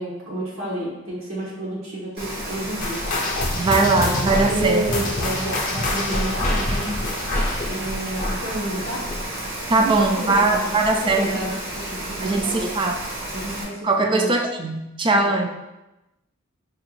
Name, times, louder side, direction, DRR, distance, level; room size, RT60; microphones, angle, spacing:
voice 1, 0.0-3.0 4.0-6.9 7.7-9.0 9.8-12.7 13.3-14.3 15.1-15.5, right 1 dB, 80° right, -6 dB, 1.4 m, -30 dB
Rain, 2.2-13.6, right 1 dB, 55° right, 1.0 m, -32 dB
sound 1, 2.8-9.7 9.9-10.3 10.8-10.9 11.7-11.8, left 2 dB, 40° left, 0.6 m, -26 dB
voice 2, 3.5-4.8 9.7-11.5 12.2-13.0 13.8-15.5, right 3 dB, 25° right, 4 dB, 0.3 m, -20 dB
4.7 x 2.5 x 3.1 m, 0.97 s
head